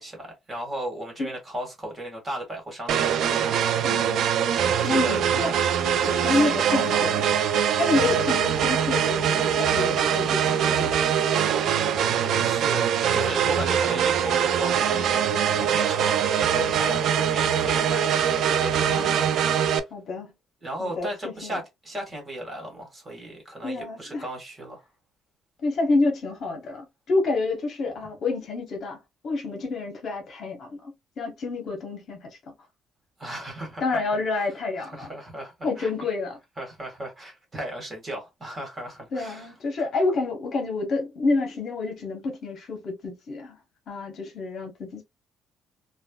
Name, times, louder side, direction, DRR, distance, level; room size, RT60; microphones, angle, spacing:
voice 1, 0.0-3.5 4.8-5.2 5.6-5.7 6.0-7.0 12.4-19.3 20.6-24.8 33.2-33.8 34.8-36.0 36.6-39.5, right 1 dB, 20° right, 1.5 m, -36 dB
sound 1, 2.9-19.8, right 8 dB, 65° right, 0.4 m, -23 dB
voice 2, 3.8-4.4 4.8-5.5 6.0-7.3 7.8-11.1 18.9-19.2 19.9-20.3 20.8-21.6 23.6-24.3 25.6-29.0 29.2-32.3 33.8-35.1 35.6-36.4 39.1-43.6 43.9-45.0, left 3 dB, 55° left, 0.9 m, -28 dB
3.3 x 2.2 x 2.2 m
cardioid pair, 125°, 0 cm